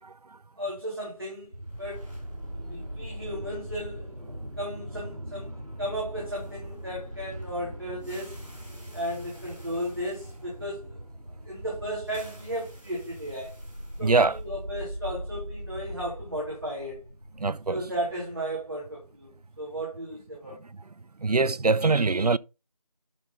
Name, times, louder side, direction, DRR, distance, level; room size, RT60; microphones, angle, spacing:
voice 1, 0.6-2.1 2.7-5.5 5.8-8.4 8.9-11.0 11.4-13.5 14.0-17.0 17.7-20.6, equal, 35° right, 3.3 m, -35 dB
sound 1, 1.5-19.6, equal, 55° right, 5.2 m, -40 dB
voice 2, 14.0-14.4 17.4-17.8 21.2-22.4, right 3 dB, 75° right, 0.5 m, -23 dB
11.5 x 4.0 x 4.0 m
figure-of-eight pair, 175°, 20 cm